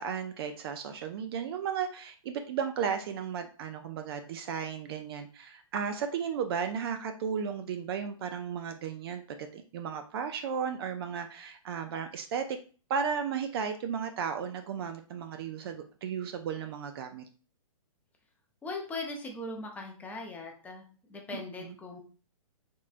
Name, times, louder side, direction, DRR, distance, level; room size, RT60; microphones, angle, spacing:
voice 1, 0.0-12.6 12.9-17.2 21.6-21.7, right 7 dB, 45° right, 7 dB, 0.4 m, -34 dB
voice 2, 18.6-22.0, left 2 dB, 10° left, 1 dB, 0.5 m, -40 dB
3.6 x 3.0 x 2.5 m, 0.38 s
hypercardioid pair, 140°, 18 cm